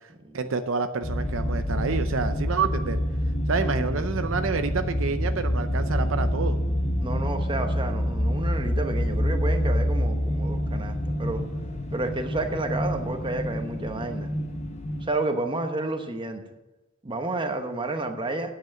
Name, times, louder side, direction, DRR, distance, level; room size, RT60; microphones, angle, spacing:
voice 1, 0.3-3.0 3.5-6.6, right 4 dB, 75° right, 9 dB, 0.6 m, -28 dB
sound 1, 1.0-15.1, equal, 35° left, 1.0 m, -27 dB
voice 2, 3.6-4.0 7.0-11.4 11.9-14.3 15.0-16.4 17.0-18.5, right 2 dB, 25° right, 6 dB, 1.0 m, -30 dB
9.3 x 8.0 x 7.3 m, 1.1 s
head